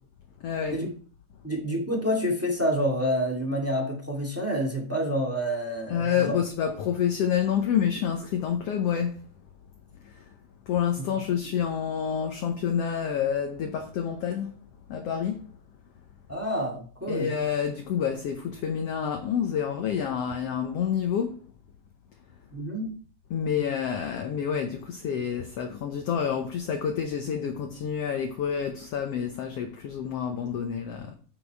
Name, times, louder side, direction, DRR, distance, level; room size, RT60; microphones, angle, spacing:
voice 1, 0.4-0.8 5.9-9.3 10.0-10.2 10.7-14.6 14.9-15.4 17.1-21.4 23.3-31.1, left 8 dB, 65° left, 1.8 m, -28 dB
voice 2, 1.4-6.3 16.3-17.3 22.5-23.0, equal, 5° right, 1.6 m, -28 dB
10.0 x 6.1 x 4.6 m
omnidirectional pair, 3.5 m